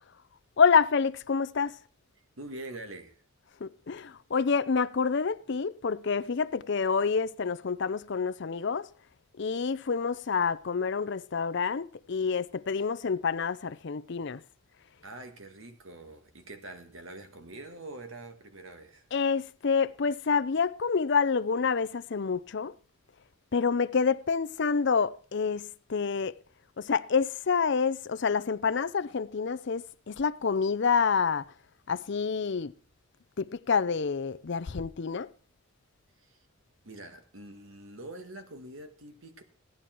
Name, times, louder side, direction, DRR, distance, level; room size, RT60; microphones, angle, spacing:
voice 1, 0.6-1.8 3.6-8.9 9.4-14.4 19.1-22.7 23.5-26.3 26.8-31.4 31.9-32.7 33.4-35.3, left 5 dB, 55° left, 0.5 m, -28 dB
voice 2, 2.2-3.2 15.0-19.1 36.2-36.4 36.8-39.4, right 2 dB, 70° right, 1.9 m, -45 dB
16.0 x 10.0 x 4.5 m
head